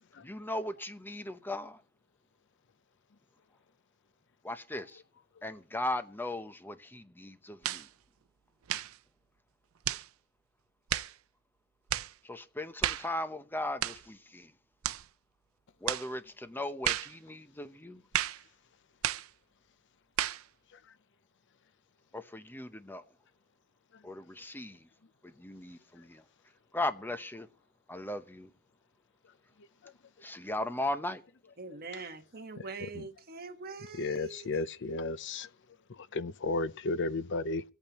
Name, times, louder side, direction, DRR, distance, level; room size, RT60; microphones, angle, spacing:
voice 1, 0.2-1.8 4.4-5.0 5.4-7.9 12.2-14.5 15.8-18.0 22.1-23.0 24.0-24.9 25.2-26.2 26.7-27.5 27.9-28.5 30.2-31.2, left 1 dB, 10° left, 0.8 m, -37 dB
sound 1, 7.6-7.9 8.7-9.0 9.8-10.1 10.9-11.1 11.9-12.1 12.8-13.1 13.8-14.1 14.8-15.1 15.9-16.1 16.8-17.1 18.1-18.4 19.0-19.3 20.2-20.4, right 12 dB, 75° right, 0.5 m, -32 dB
voice 2, 31.6-34.5, right 4 dB, 45° right, 1.4 m, -43 dB
voice 3, 34.0-35.5 35.9-37.6, left 3 dB, 60° left, 0.6 m, -33 dB
24.5 x 8.8 x 3.0 m
head